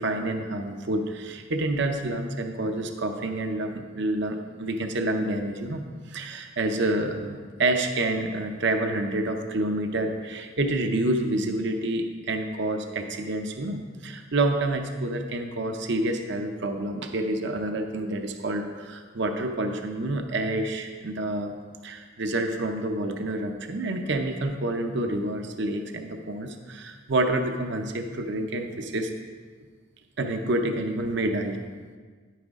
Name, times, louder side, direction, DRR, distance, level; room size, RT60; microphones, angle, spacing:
voice 1, 0.0-21.5 21.8-29.1 30.2-31.6, right 2 dB, 55° right, 5 dB, 0.7 m, -28 dB
10.5 x 9.1 x 3.6 m, 1.5 s
head